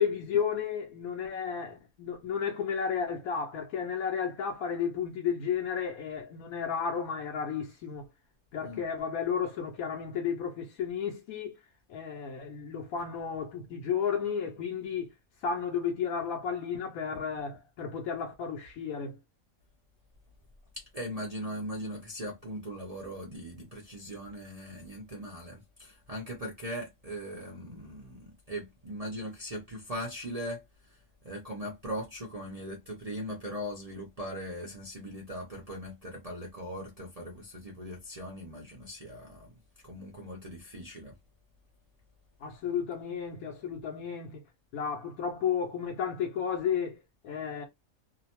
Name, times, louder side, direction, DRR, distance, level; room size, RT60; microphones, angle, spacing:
voice 1, 0.0-8.1 8.5-11.6 11.9-15.1 15.4-19.2 42.4-44.4 44.7-47.6, left 7 dB, 80° left, 1.0 m, -33 dB
voice 2, 20.7-41.2, equal, 45° right, 0.4 m, -40 dB
2.8 x 2.1 x 2.9 m
omnidirectional pair, 1.5 m